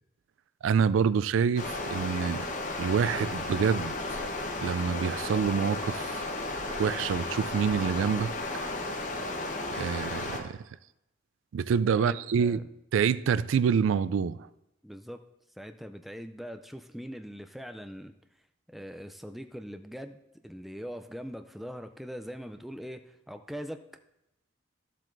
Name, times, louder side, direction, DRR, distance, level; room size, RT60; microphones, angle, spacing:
voice 1, 0.6-2.5 2.8-4.2 4.6-6.2 6.8-8.3 9.7-10.6 11.5-12.6 12.9-14.5, right 6 dB, 85° right, 17 dB, 0.3 m, -27 dB
Stream, 1.6-10.4, left 2 dB, 40° left, 0.9 m, -34 dB
voice 2, 11.9-12.6 14.8-15.2 15.6-18.1 18.7-20.2 20.4-23.8, equal, ahead, 7 dB, 0.3 m, -41 dB
13.5 x 7.5 x 2.6 m, 0.86 s
head